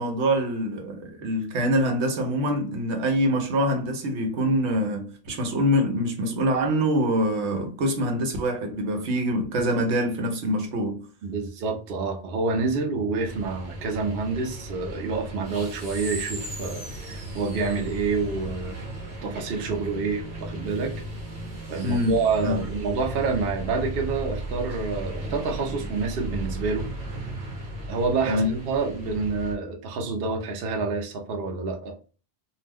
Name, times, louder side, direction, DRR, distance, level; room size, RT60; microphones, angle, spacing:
voice 1, 0.0-11.0 21.8-22.6 28.3-28.5, equal, 85° right, 1.0 m, -25 dB
voice 2, 11.2-18.8 19.2-20.9 21.7-26.9 27.9-31.9, right 4 dB, 65° right, 0.8 m, -28 dB
sound 1, 13.2-29.5, right 1 dB, 40° right, 1.0 m, -36 dB
2.5 x 2.1 x 3.3 m
omnidirectional pair, 1.1 m